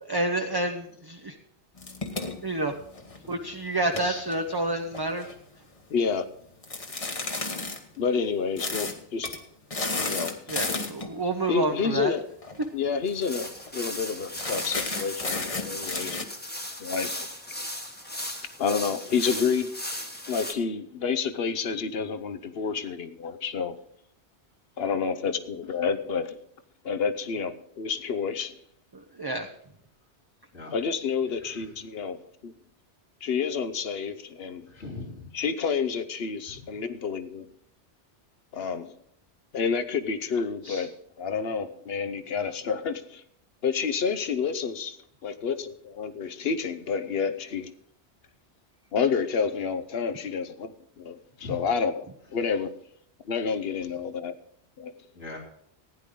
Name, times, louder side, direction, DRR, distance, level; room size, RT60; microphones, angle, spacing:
voice 1, 0.0-1.3 2.4-2.7 3.3-5.3 10.5-12.1 29.2-29.5, right 2 dB, 25° right, 4 dB, 0.7 m, -28 dB
sound 1, 1.8-3.3 3.8-5.3 6.6-7.8 8.6-9.0 9.2-9.4 9.7-11.1 12.4-12.7 13.0-13.1 13.4-13.7 14.4-16.2, left 3 dB, 30° left, 1.2 m, -32 dB
voice 2, 5.9-6.3 8.0-9.4 10.0-10.4 11.5-12.2 12.7-16.3 16.8-17.1 18.6-19.7 20.3-23.8 24.8-26.4 26.8-28.6 30.7-32.5 33.2-34.7 35.3-37.5 38.5-38.9 39.5-40.9 41.2-43.2 43.6-45.0 45.2-47.7 48.9-52.7 53.2-54.4 54.8-54.9, left 6 dB, 60° left, 11 dB, 1.0 m, -29 dB
sound 2, 13.1-20.5, left 1 dB, 10° left, 1.1 m, -37 dB
voice 3, 34.7-35.3 40.6-40.9 51.4-51.6 55.1-55.4, left 3 dB, 80° left, -5 dB, 3.9 m, -39 dB
15.5 x 10.0 x 3.8 m, 0.67 s
omnidirectional pair, 1.2 m